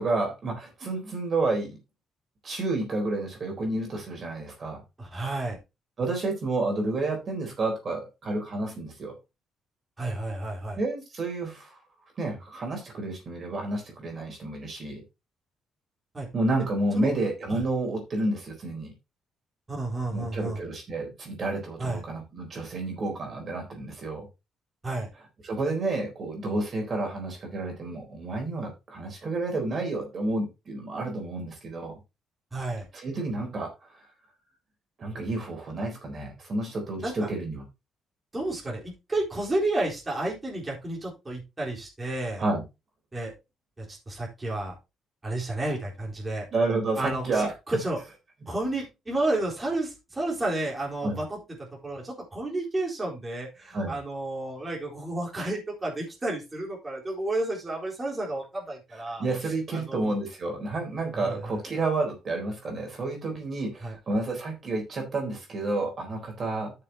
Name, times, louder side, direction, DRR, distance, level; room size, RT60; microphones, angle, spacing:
voice 1, 0.0-1.8 2.4-4.8 6.0-9.2 10.8-11.8 12.2-15.0 16.3-18.9 20.1-24.3 25.4-32.0 32.9-34.0 35.0-37.7 42.4-42.6 46.5-47.5 51.0-51.2 53.7-54.0 59.2-66.7, right 2 dB, 45° right, 1 dB, 3.9 m, -30 dB
voice 2, 5.0-5.6 10.0-10.8 16.1-16.3 17.0-17.1 17.5-17.6 19.7-20.6 21.8-22.0 24.8-25.1 32.5-32.9 37.0-37.3 38.3-42.4 43.1-43.3 43.8-44.7 45.2-46.5 47.0-48.0 48.5-51.4 51.8-60.1 61.2-61.6 63.8-64.0, right 2 dB, 20° right, -3 dB, 4.0 m, -31 dB
12.5 x 6.7 x 2.9 m, 0.25 s
cardioid pair, 90°, 0 cm